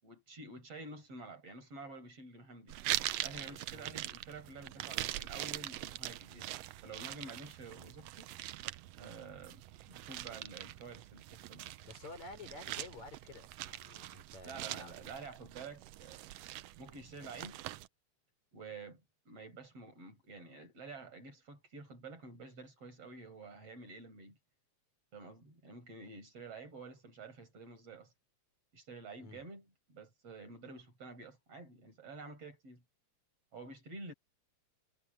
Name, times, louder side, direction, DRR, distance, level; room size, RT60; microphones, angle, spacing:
voice 1, 0.0-2.8 3.2-8.3 9.0-11.7 14.4-16.3 16.8-17.6 18.5-24.4 25.1-28.1 28.7-32.8 33.5-34.1, right 3 dB, 55° right, 7.3 m, -50 dB
sound 1, 2.7-17.9, right 15 dB, 75° right, 1.6 m, -43 dB
voice 2, 11.8-15.2 29.2-29.4, left 3 dB, 70° left, 7.5 m, -51 dB
omnidirectional pair, 3.3 m